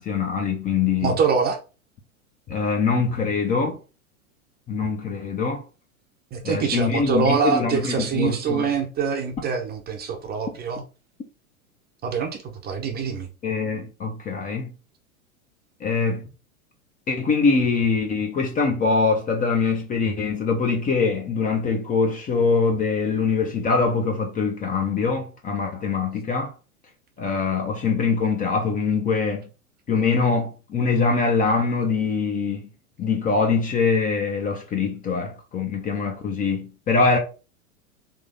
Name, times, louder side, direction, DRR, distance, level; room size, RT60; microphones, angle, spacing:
voice 1, 0.0-1.2 2.5-3.8 4.7-5.6 6.4-8.7 13.4-14.7 15.8-16.3 17.1-26.5 27.2-29.5 29.9-32.7 33.0-37.2, left 4 dB, 20° left, 0.6 m, -23 dB
voice 2, 1.0-1.6 6.3-10.8 12.0-13.3, right 5 dB, 20° right, 0.7 m, -24 dB
3.6 x 2.8 x 3.9 m
figure-of-eight pair, 95°, 44 cm